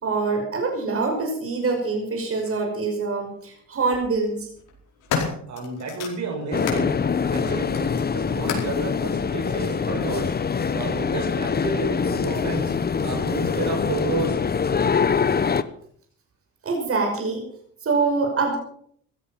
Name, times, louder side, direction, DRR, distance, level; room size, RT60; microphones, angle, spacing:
voice 1, 0.0-4.5 16.6-17.4 17.8-18.6, right 4 dB, 50° right, 2 dB, 5.8 m, -24 dB
sound 1, 2.4-2.6 3.7-4.0 4.6-6.9 7.3-8.8 9.7-9.8, left 6 dB, 90° left, 5.1 m, -32 dB
voice 2, 5.5-6.9 7.3-12.7 13.0-14.4, right 4 dB, 65° right, 2 dB, 6.4 m, -31 dB
sound 2, 6.5-15.6, left 6 dB, 30° left, 1.0 m, -24 dB
16.0 x 14.0 x 5.8 m, 0.63 s
cardioid pair, 90°, 30 cm